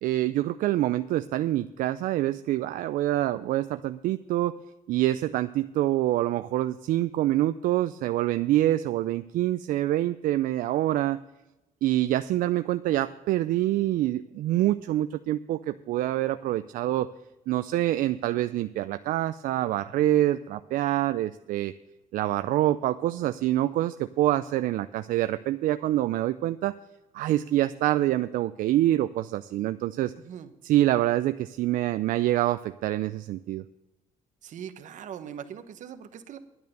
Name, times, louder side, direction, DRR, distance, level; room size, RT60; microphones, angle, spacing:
voice 1, 0.0-4.5 4.9-11.2 11.8-17.1 17.5-21.7 22.1-26.7 27.1-30.1 30.6-33.6, right 14 dB, 80° right, 11 dB, 0.4 m, -26 dB
voice 2, 30.2-30.5 34.4-36.4, right 8 dB, 65° right, 9 dB, 1.1 m, -41 dB
10.5 x 9.4 x 6.6 m, 0.97 s
cardioid pair, 125°, 14 cm